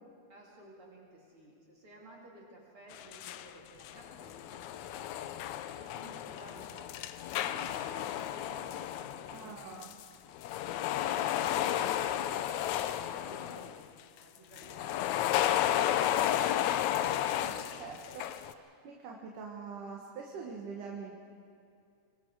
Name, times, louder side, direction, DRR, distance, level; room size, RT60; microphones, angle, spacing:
voice 1, 0.3-5.4 5.8-7.1 7.4-9.8 10.9-13.8 14.1-16.5, right 1 dB, 45° right, -3 dB, 3.5 m, -54 dB
sound 1, 2.9-3.5 3.8-10.1 10.3-13.8 14.6-18.5, left 12 dB, 75° left, 2.0 m, -33 dB
voice 2, 9.3-9.9 17.4-21.1, right 5 dB, 85° right, 0 dB, 3.1 m, -44 dB
25.0 x 23.0 x 4.8 m, 2.4 s
omnidirectional pair, 3.5 m